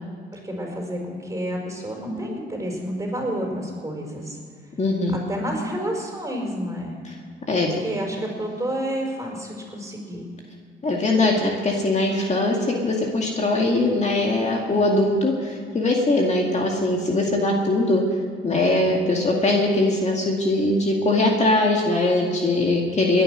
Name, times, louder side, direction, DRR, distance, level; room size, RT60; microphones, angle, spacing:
voice 1, 0.3-4.4 5.3-7.0 7.8-10.2, equal, 15° right, 0 dB, 5.0 m, -29 dB
voice 2, 4.8-5.2 7.5-7.8 10.8-12.6 12.8-18.0 18.4-23.2, left 2 dB, 35° left, 0 dB, 2.3 m, -21 dB
20.0 x 9.9 x 6.4 m, 2.1 s
cardioid pair, 90°, 20 cm